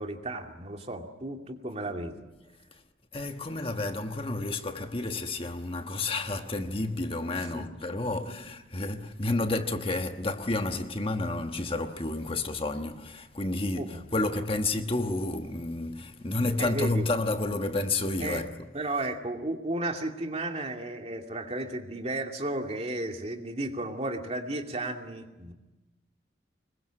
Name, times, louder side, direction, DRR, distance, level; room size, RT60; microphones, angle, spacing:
voice 1, 0.0-2.3 7.4-7.7 8.3-8.4 13.8-14.1 16.6-17.1 18.2-18.4 18.7-25.5, right 2 dB, 35° right, 2.5 m, -34 dB
voice 2, 3.1-18.5, left 2 dB, 30° left, 1.3 m, -30 dB
26.0 x 22.0 x 7.6 m
head